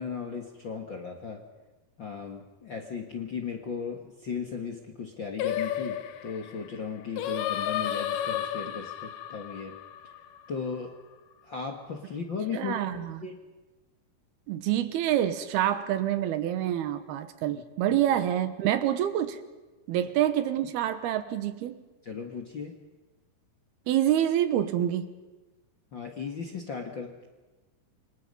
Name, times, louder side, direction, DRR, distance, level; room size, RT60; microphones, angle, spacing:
voice 1, 0.0-1.4 2.0-9.8 10.5-11.0 11.4-13.4 17.5-17.6 17.9-18.0 22.0-22.7 25.9-27.3, left 5 dB, 45° left, 3 dB, 1.6 m, -36 dB
Singing, 5.4-10.7, left 10 dB, 80° left, 2.9 m, -32 dB
voice 2, 12.5-13.2 14.5-19.4 19.9-21.8 23.9-25.1, right 11 dB, 80° right, 11 dB, 3.2 m, -27 dB
28.5 x 26.0 x 5.5 m, 1.2 s
omnidirectional pair, 4.5 m